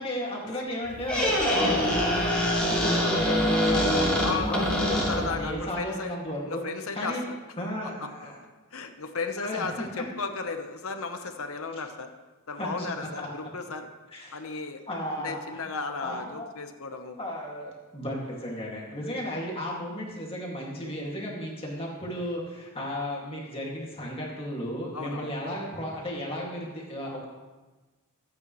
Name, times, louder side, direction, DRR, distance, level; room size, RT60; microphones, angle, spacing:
voice 1, 0.0-6.6 6.9-7.2 7.6-8.3 9.4-10.0 12.6-12.9 13.2-13.3 14.1-14.4 14.9-15.7 16.0-16.5 17.2-27.3, equal, 25° left, -3 dB, 2.2 m, -34 dB
Squeak, 0.9-5.5, equal, 5° left, 3.2 m, -24 dB
voice 2, 4.2-4.8 5.1-6.2 6.5-7.2 8.7-12.1 12.5-13.9 14.3-14.8 15.2-17.2 24.9-25.3, left 4 dB, 70° left, 6 dB, 1.0 m, -34 dB
23.5 x 8.9 x 3.2 m, 1.2 s
head